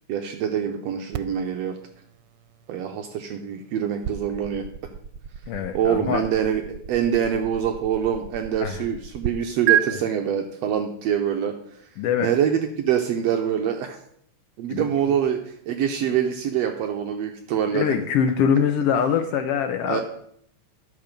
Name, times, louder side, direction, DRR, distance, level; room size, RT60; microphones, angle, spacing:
voice 1, 0.1-1.7 2.7-4.6 5.7-6.6 6.9-11.5 12.2-14.0 14.6-17.9 19.9-20.0, right 8 dB, 75° right, 5 dB, 1.7 m, -25 dB
sound 1, 1.1-9.3 9.7-9.8, right 12 dB, 90° right, 2.0 m, -31 dB
voice 2, 5.5-6.2 8.6-8.8 12.0-12.3 14.7-14.8 17.7-20.0, left 7 dB, 80° left, 7 dB, 1.3 m, -23 dB
11.5 x 6.9 x 5.1 m, 0.70 s
omnidirectional pair, 3.3 m